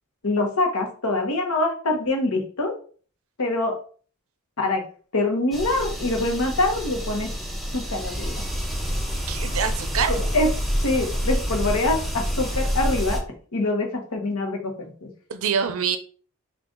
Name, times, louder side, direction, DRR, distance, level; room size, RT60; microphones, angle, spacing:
voice 1, 0.2-2.7 3.4-3.8 4.6-4.8 5.1-7.3 7.7-8.4 10.1-10.5 10.8-13.2 13.5-15.1, left 2 dB, 75° left, 3 dB, 1.0 m, -24 dB
sound 1, 5.5-13.2, equal, ahead, 0.4 m, -27 dB
voice 2, 9.3-10.2 15.3-16.0, right 7 dB, 65° right, 9 dB, 0.5 m, -25 dB
3.8 x 2.4 x 3.8 m, 0.42 s
head